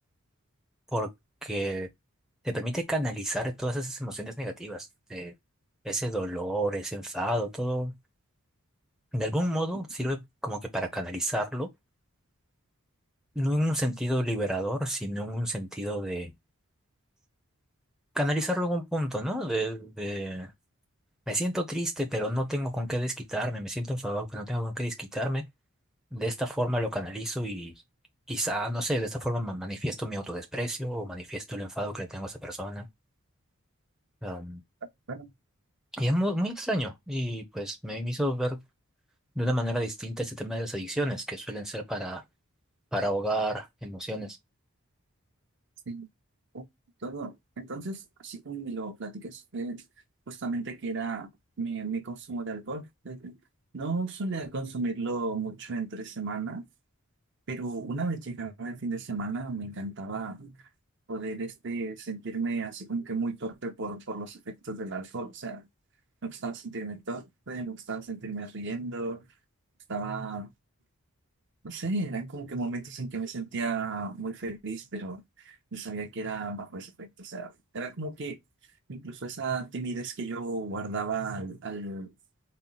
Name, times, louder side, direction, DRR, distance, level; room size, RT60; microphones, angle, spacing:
voice 1, 1.4-1.9 2.4-5.3 5.8-7.9 9.1-11.7 13.4-16.3 18.1-20.5 21.3-25.4 26.1-27.7 28.3-32.9 34.2-34.6 35.9-38.6 39.4-42.2 42.9-44.4, equal, ahead, 0.5 m, -30 dB
voice 2, 47.0-49.8 50.3-51.3 51.6-53.4 53.7-56.6 57.5-60.5 61.1-65.6 66.2-69.2 69.9-70.5 71.6-78.4 78.9-82.1, right 3 dB, 55° right, 0.7 m, -34 dB
4.2 x 2.0 x 3.8 m
head